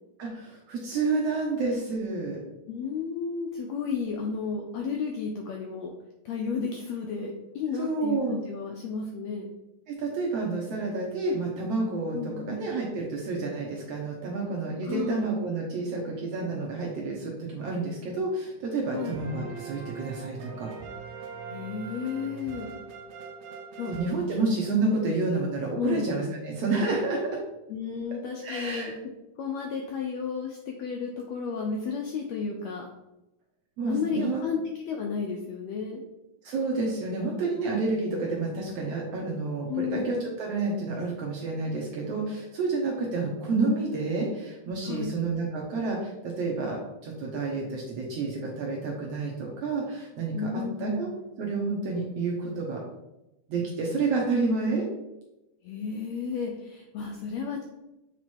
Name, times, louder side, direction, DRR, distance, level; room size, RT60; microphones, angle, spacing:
voice 1, 0.2-2.4 7.7-8.4 9.9-20.7 23.9-27.4 28.4-29.0 33.8-34.4 36.4-51.1 51.4-52.8 53.5-54.9, right 3 dB, 70° right, -2 dB, 1.5 m, -29 dB
voice 2, 2.7-5.9 6.2-9.5 12.1-12.6 14.8-15.3 18.9-19.2 21.5-22.7 23.8-23.9 25.0-25.1 25.8-26.1 27.7-28.9 29.4-32.9 33.9-34.6 34.9-36.0 39.7-40.3 44.8-45.1 50.3-51.0 55.6-57.6, left 5 dB, 90° left, 1 dB, 1.5 m, -32 dB
sound 1, 19.0-24.9, right 5 dB, 90° right, 1.3 m, -41 dB
7.1 x 3.0 x 4.4 m, 0.95 s
omnidirectional pair, 3.7 m